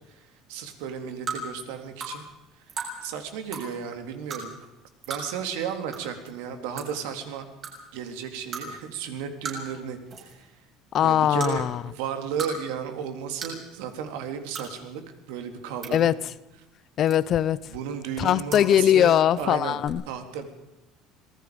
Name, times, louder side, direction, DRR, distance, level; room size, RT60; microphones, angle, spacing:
voice 1, 0.1-2.3 2.6-2.7 3.0-4.7 5.1-7.5 7.9-10.5 11.0-16.1 17.6-19.8 20.1-20.5, right 7 dB, 90° right, 6 dB, 3.7 m, -34 dB
sound 1, 1.3-1.4 2.0-2.1 2.7-2.9 3.5-3.6 4.3-4.4 5.0-5.2 5.9-6.0 6.3-6.4 6.8-7.0 7.6-7.7 8.5-8.6 9.4-9.7 10.1-10.4 11.3-11.5 12.1-12.5 12.8-12.9 13.4-13.6 14.5-14.7 15.5-15.9 17.1-17.4 18.4-18.6 19.8-19.9, right 5 dB, 30° right, 6.9 m, -34 dB
voice 2, 10.9-11.9 15.9-16.3 17.0-17.6 18.2-20.0, left 10 dB, 35° left, 18 dB, 0.7 m, -21 dB
26.5 x 19.5 x 5.3 m, 0.97 s
cardioid pair, 175°, 0 cm